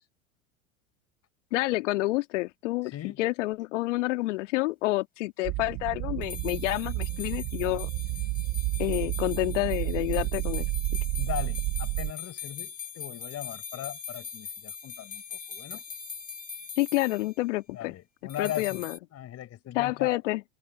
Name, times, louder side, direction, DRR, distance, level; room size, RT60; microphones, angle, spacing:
voice 1, 1.5-7.9 8.8-10.7 16.8-18.0 18.4-19.0 19.7-20.4, left 19 dB, 65° left, 2.1 m, -29 dB
voice 2, 2.9-3.2 11.2-15.8 17.7-18.8 19.1-20.2, left 12 dB, 40° left, 4.8 m, -38 dB
sound 1, 5.4-12.1, right 23 dB, 40° right, 0.5 m, -31 dB
sound 2, 6.2-17.3 18.3-19.0, left 7 dB, 20° left, 2.8 m, -41 dB
hypercardioid pair, 85°, 39 cm